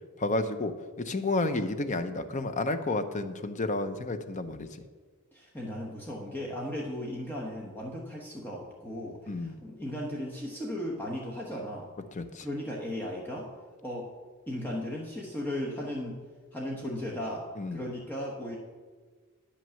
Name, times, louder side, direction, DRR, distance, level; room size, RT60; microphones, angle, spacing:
voice 1, 0.2-4.7 9.3-9.6 12.1-12.5 17.6-17.8, left 2 dB, 35° left, 9 dB, 0.6 m, -31 dB
voice 2, 5.3-11.9 12.4-13.5 13.8-14.1 14.5-16.2 16.5-17.5 17.7-18.6, left 1 dB, 10° left, -3 dB, 1.1 m, -36 dB
9.9 x 6.1 x 7.0 m, 1.5 s
head